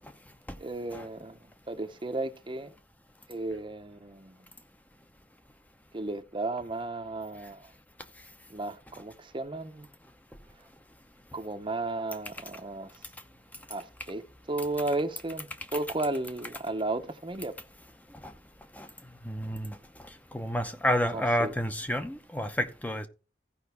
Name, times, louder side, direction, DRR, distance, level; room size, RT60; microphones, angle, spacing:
voice 1, 0.6-1.4 1.7-2.8 3.3-4.4 5.9-7.7 8.5-9.9 11.3-12.9 13.7-17.5 21.1-21.5, right 2 dB, 30° right, 0.8 m, -34 dB
voice 2, 19.2-19.8 20.3-23.1, equal, 10° left, 0.7 m, -30 dB
15.5 x 5.2 x 3.4 m
head